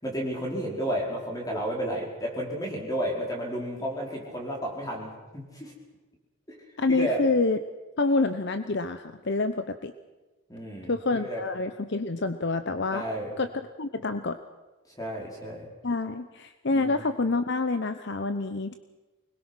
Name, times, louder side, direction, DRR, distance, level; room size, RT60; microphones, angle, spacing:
voice 1, 0.0-5.7 6.9-7.2 10.5-11.4 12.9-13.4 14.9-15.7 16.7-17.0, equal, 15° left, -1 dB, 5.0 m, -32 dB
voice 2, 6.8-7.6 8.0-9.9 10.9-13.1 13.4-13.5 13.8-14.4 15.8-18.8, left 3 dB, 55° left, 9 dB, 0.8 m, -27 dB
24.5 x 21.5 x 6.2 m, 1.2 s
head